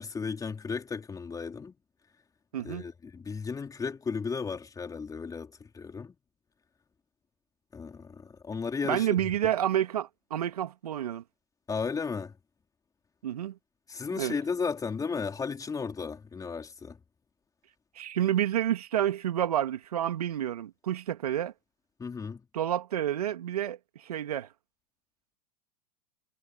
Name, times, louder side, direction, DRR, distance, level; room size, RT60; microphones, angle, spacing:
voice 1, 0.0-1.7 2.6-6.1 7.7-9.3 11.7-12.3 13.9-17.0 22.0-22.4, left 5 dB, 20° left, 3.8 m, -34 dB
voice 2, 2.5-2.8 8.9-11.2 13.2-13.6 14.2-14.3 18.0-21.5 22.5-24.5, right 11 dB, 80° right, 2.7 m, -29 dB
hypercardioid pair, 100°, 19 cm